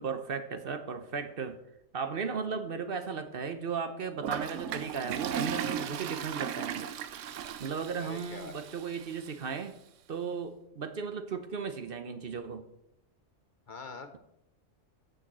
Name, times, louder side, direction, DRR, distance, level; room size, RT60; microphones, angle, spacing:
voice 1, 0.0-1.6 1.9-6.9 7.6-9.7 10.1-12.6, right 5 dB, 50° right, 9 dB, 1.0 m, -36 dB
Toilet flush, 4.2-9.3, right 9 dB, 80° right, 1.0 m, -36 dB
voice 2, 8.0-8.6 13.7-14.2, left 4 dB, 45° left, 8 dB, 0.9 m, -44 dB
6.7 x 6.4 x 7.4 m, 0.80 s
omnidirectional pair, 1.3 m